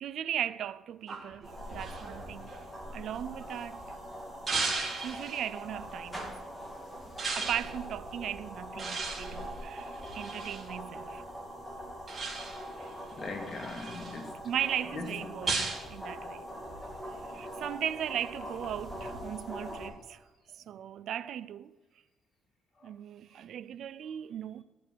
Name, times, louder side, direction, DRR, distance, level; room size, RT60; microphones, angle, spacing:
voice 1, 0.0-2.6 2.9-4.0 5.0-6.5 7.4-11.2 12.8-12.9 14.4-16.5 17.1-20.2 20.7-21.8 22.8-24.6, right 10 dB, 70° right, 0.5 m, -37 dB
sound 1, 1.1-3.7 4.5-5.5 7.2-7.7 8.8-10.7 12.1-12.7 13.3-14.2 15.5-15.9, right 4 dB, 35° right, 3.3 m, -36 dB
sound 2, 1.4-19.9, equal, ahead, 3.2 m, -43 dB
voice 2, 9.1-9.5 13.1-14.4 14.9-15.2 22.8-22.9, left 3 dB, 40° left, 2.5 m, -41 dB
15.5 x 6.9 x 6.1 m
cardioid pair, 90°, 0 cm